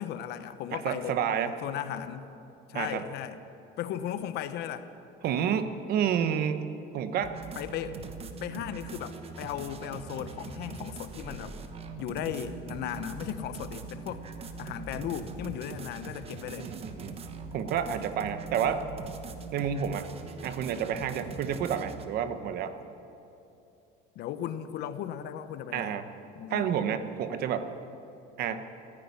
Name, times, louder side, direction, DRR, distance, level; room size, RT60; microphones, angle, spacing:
voice 1, 0.0-1.2 1.6-2.3 2.7-3.4 3.8-4.9 7.5-8.0 8.4-11.6 12.0-14.2 14.6-16.7 24.1-26.0 26.3-26.7, left 10 dB, 60° left, 11 dB, 1.0 m, -36 dB
voice 2, 0.7-1.5 2.7-3.0 5.2-6.7 6.9-7.3 16.6-17.2 17.5-18.8 19.5-20.1 20.4-22.8 25.7-26.1 26.5-27.7 28.4-28.7, right 8 dB, 55° right, 10 dB, 1.0 m, -30 dB
sound 1, 7.2-22.1, right 4 dB, 30° right, 1.1 m, -42 dB
15.0 x 10.0 x 9.7 m, 2.8 s
cardioid pair, 140°, 19 cm